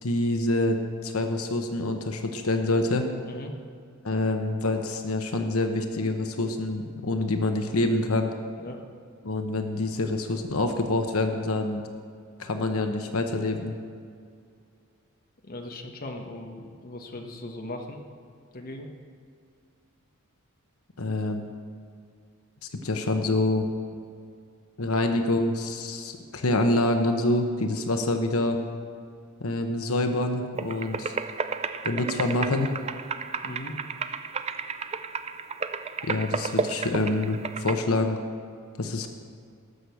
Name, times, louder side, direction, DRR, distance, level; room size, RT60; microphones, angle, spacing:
voice 1, 0.0-3.1 4.0-8.3 9.2-11.8 12.4-13.7 21.0-21.4 22.6-23.7 24.8-28.6 29.4-31.2 31.8-32.7 36.0-38.2 38.8-39.1, left 2 dB, 85° left, 5 dB, 1.0 m, -26 dB
voice 2, 15.4-18.0 18.5-18.9 33.4-33.8, left 1 dB, 45° left, 2 dB, 1.2 m, -38 dB
sound 1, 30.6-37.8, right 5 dB, 30° right, 0.4 m, -32 dB
18.0 x 6.5 x 7.0 m, 2.3 s
head